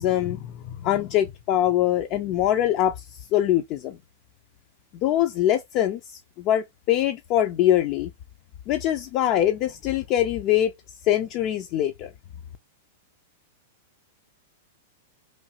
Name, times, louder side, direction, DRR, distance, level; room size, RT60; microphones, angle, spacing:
voice 1, 0.0-4.0 5.0-8.1 8.7-10.7 11.0-12.1, left 12 dB, 45° left, 0.4 m, -23 dB
3.0 x 2.4 x 2.8 m
hypercardioid pair, 100°, 0 cm